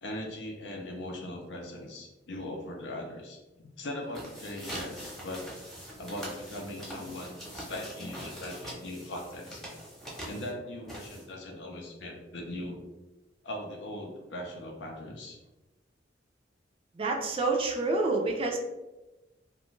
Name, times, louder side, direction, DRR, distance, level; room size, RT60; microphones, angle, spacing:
voice 1, 0.0-5.5 6.0-9.7 10.2-12.8 13.4-15.4, left 1 dB, 70° left, 1 dB, 0.6 m, -40 dB
sound 1, 4.0-11.5, equal, ahead, 0.8 m, -43 dB
voice 2, 16.9-18.6, right 3 dB, 30° right, 1 dB, 0.4 m, -28 dB
2.5 x 2.2 x 3.0 m, 1.1 s
head